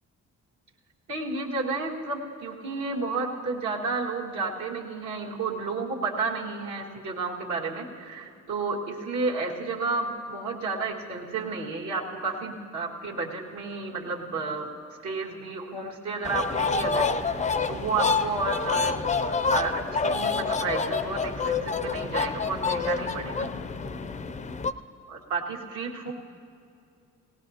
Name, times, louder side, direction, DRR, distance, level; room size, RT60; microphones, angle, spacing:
voice 1, 1.1-14.7 15.0-23.5 25.1-26.1, right 3 dB, 75° right, -2 dB, 1.9 m, -31 dB
sound 1, 16.2-24.7, left 4 dB, 25° left, 0.4 m, -27 dB
18.5 x 18.0 x 2.8 m, 2.5 s
cardioid pair, 90°, 30 cm